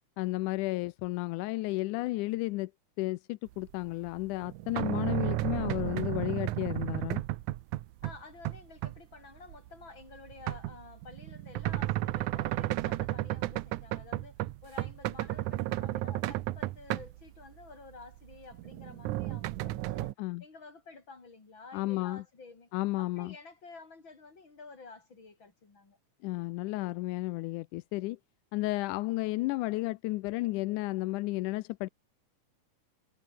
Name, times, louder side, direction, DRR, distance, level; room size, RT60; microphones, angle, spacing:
voice 1, 0.2-2.7 3.0-7.2 20.2-20.4 21.7-22.2 22.7-23.3 26.2-28.2 28.5-31.9, left 19 dB, 85° left, 2.1 m, -33 dB
sound 1, 4.1-8.2 8.4-9.0 9.5-17.4 18.0-20.1, right 16 dB, 85° right, 2.2 m, -33 dB
voice 2, 8.0-20.1 20.4-22.7 23.0-26.0, left 4 dB, 35° left, 5.5 m, -51 dB
omnidirectional pair, 3.5 m